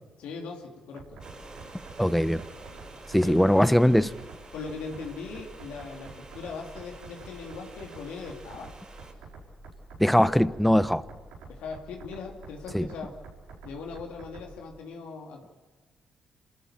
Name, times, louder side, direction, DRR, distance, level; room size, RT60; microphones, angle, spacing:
voice 1, 0.2-1.2 3.2-3.5 4.5-8.7 11.5-13.2 13.6-15.5, left 4 dB, 80° left, 2.7 m, -39 dB
sound 1, 1.0-14.6, right 3 dB, 85° right, 5.5 m, -48 dB
sound 2, 1.2-9.1, right 3 dB, 40° right, 5.2 m, -49 dB
voice 2, 2.0-2.4 3.1-4.1 10.0-11.0 12.7-12.9, equal, 5° left, 0.9 m, -21 dB
26.5 x 13.5 x 8.9 m
supercardioid pair, 55°, 2 cm